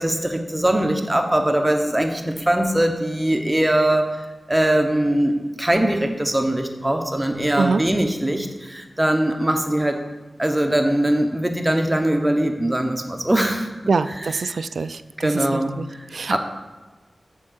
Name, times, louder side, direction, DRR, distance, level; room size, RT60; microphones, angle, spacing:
voice 1, 0.0-10.0 10.4-14.6 15.2-16.4, right 1 dB, 15° right, 5 dB, 0.9 m, -22 dB
voice 2, 13.9-15.4 15.8-15.9 16.1-16.4, right 4 dB, 85° right, 13 dB, 0.3 m, -24 dB
7.4 x 4.5 x 6.4 m, 1.2 s
wide cardioid pair, 60°, 0 cm